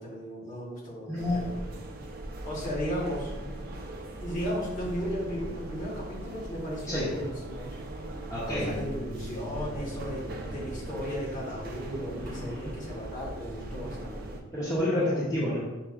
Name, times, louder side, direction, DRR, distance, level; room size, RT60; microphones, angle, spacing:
voice 1, 0.0-1.6 2.4-3.3 4.2-7.8 8.5-14.4 14.9-15.1, equal, 40° left, -6 dB, 1.1 m, -35 dB
voice 2, 1.1-1.4 2.6-2.7 3.4-3.5 6.9-7.2 8.3-8.7 12.2-12.7 14.5-15.6, left 1 dB, 15° left, -9 dB, 0.7 m, -30 dB
sound 1, 1.2-14.4, right 1 dB, 45° right, 0.4 m, -40 dB
Bass guitar, 8.5-14.8, equal, 20° right, 0.7 m, -46 dB
5.8 x 2.3 x 2.4 m, 1.1 s
head